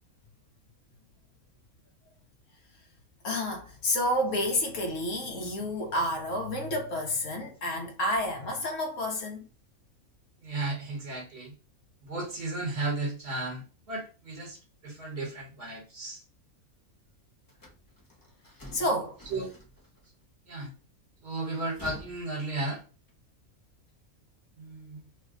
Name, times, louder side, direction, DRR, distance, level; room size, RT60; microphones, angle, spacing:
voice 1, 3.2-9.5 18.7-19.2, left 1 dB, 60° left, 1.2 m, -30 dB
voice 2, 10.4-11.5 12.0-16.2 19.3-19.5 20.5-20.7 21.2-22.8 24.6-25.0, right 2 dB, 50° right, 1.5 m, -34 dB
sound 1, 17.5-20.1 21.4-23.2, left 1 dB, 25° left, 0.4 m, -49 dB
3.2 x 2.2 x 3.6 m
omnidirectional pair, 1.5 m